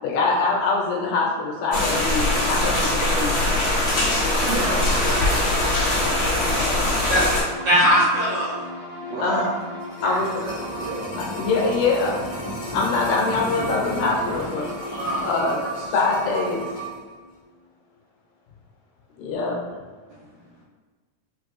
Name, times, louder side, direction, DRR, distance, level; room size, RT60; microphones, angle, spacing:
voice 1, 0.0-3.4 4.7-4.8 9.1-9.5 10.0-10.4 11.3-12.2 12.7-14.7 15.2-15.6 15.9-16.7 19.2-19.6, left 3 dB, 85° left, -2 dB, 2.4 m, -23 dB
sound 1, 1.7-7.4, left 1 dB, 45° left, 1.7 m, -22 dB
sound 2, 3.9-17.4, left 2 dB, 50° right, 1.3 m, -38 dB
voice 2, 4.4-7.0 9.1-9.5 10.0-11.2, right 3 dB, 85° right, -2 dB, 2.3 m, -32 dB
voice 3, 7.6-8.5 14.9-15.3, equal, 70° right, -9 dB, 1.5 m, -19 dB
sound 3, 9.6-17.0 17.3-17.4, right 1 dB, 65° left, 0.8 m, -34 dB
5.6 x 2.5 x 3.2 m, 1.4 s
omnidirectional pair, 3.7 m